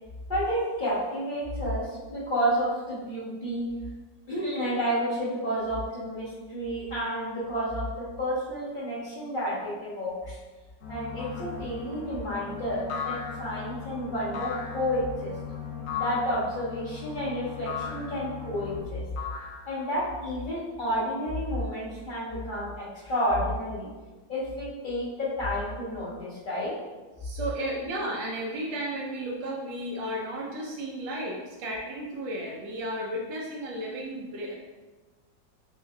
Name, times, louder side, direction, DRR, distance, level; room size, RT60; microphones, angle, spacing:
voice 1, 0.3-3.7 4.3-10.4 10.9-15.3 15.9-19.0 19.7-23.9 24.3-26.8, equal, 35° left, -9 dB, 0.8 m, -30 dB
sound 1, 10.8-18.8, left 6 dB, 85° left, 1.4 m, -40 dB
sound 2, 11.2-11.6 12.9-13.7 14.3-14.9 15.9-16.4 17.7-18.2 19.2-19.9, left 6 dB, 65° left, 0.7 m, -36 dB
voice 2, 27.2-34.5, right 1 dB, 80° right, -2 dB, 1.3 m, -33 dB
6.3 x 2.6 x 2.2 m, 1.3 s
omnidirectional pair, 2.0 m